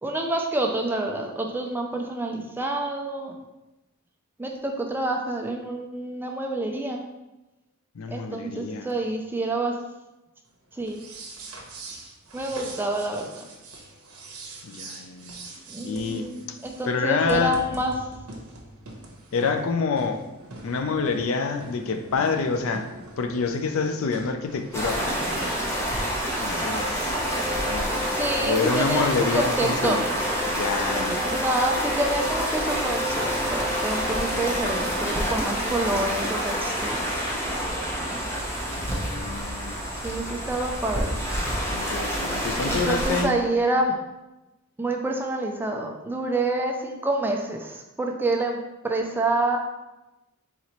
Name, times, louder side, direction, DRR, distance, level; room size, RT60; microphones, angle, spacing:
voice 1, 0.0-3.3 4.4-7.0 8.1-9.8 10.7-11.0 12.3-13.4 15.7-17.9 28.1-29.1 29.3-30.0 31.3-37.1 40.0-41.2 42.6-43.9 44.8-49.6, right 2 dB, 10° right, 2 dB, 0.3 m, -27 dB
voice 2, 7.9-8.9 12.6-12.8 14.6-15.5 15.8-16.6 16.8-17.6 19.3-20.3 20.6-22.9 23.2-25.3 26.3-27.1 27.6-28.1 28.4-30.0 30.5-31.2 38.7-39.8 41.7-43.4, left 4 dB, 65° left, 7 dB, 0.4 m, -27 dB
sound 1, 10.8-26.1, right 2 dB, 75° right, 0.8 m, -42 dB
sound 2, 24.7-43.2, equal, 10° left, 0.8 m, -27 dB
Wind instrument woodwind instrument, 27.2-35.1, left 1 dB, 50° right, 0.8 m, -35 dB
4.1 x 4.0 x 3.0 m, 1.0 s
head